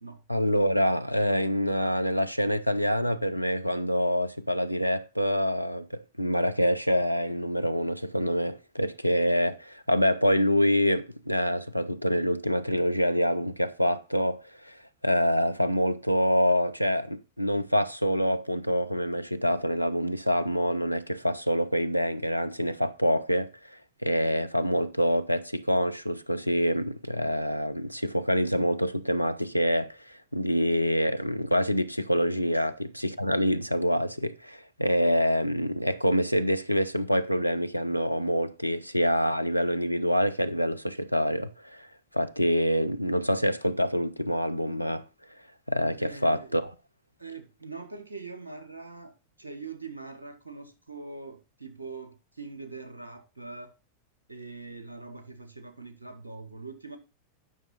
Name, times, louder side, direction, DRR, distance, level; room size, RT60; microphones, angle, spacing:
voice 1, 0.3-14.8 15.0-41.9 42.1-45.1 45.7-46.7, equal, 90° left, 0.6 m, -26 dB
voice 2, 46.0-46.6 47.2-49.1 49.4-53.7 54.3-57.0, right 4 dB, 85° right, 1.3 m, -42 dB
9.4 x 5.9 x 4.1 m
figure-of-eight pair, 90°, 0 cm